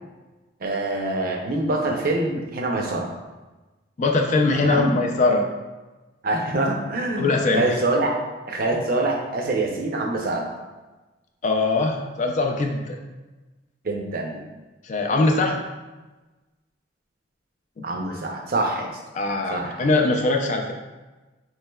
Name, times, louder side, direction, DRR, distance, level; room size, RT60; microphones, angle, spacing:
voice 1, 0.6-3.1 4.5-4.9 6.2-8.2 8.5-10.5 13.8-14.4 17.8-19.0 19.5-19.7, right 2 dB, 50° right, 1 dB, 0.5 m, -25 dB
voice 2, 4.0-5.5 7.2-7.8 11.4-13.0 14.8-15.6 19.1-20.7, left 3 dB, 40° left, 3 dB, 0.4 m, -21 dB
4.4 x 3.1 x 2.2 m, 1.2 s
head